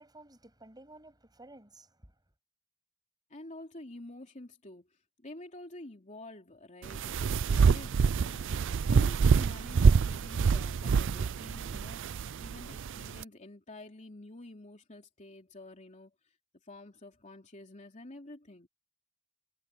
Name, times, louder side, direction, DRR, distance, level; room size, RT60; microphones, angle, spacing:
voice 1, 0.0-2.1, right 2 dB, 20° right, 7.3 m, -54 dB
voice 2, 3.3-16.3 16.6-18.7, left 1 dB, 35° left, 3.2 m, -49 dB
sound 1, 6.8-13.2, right 5 dB, 60° right, 0.4 m, -26 dB
head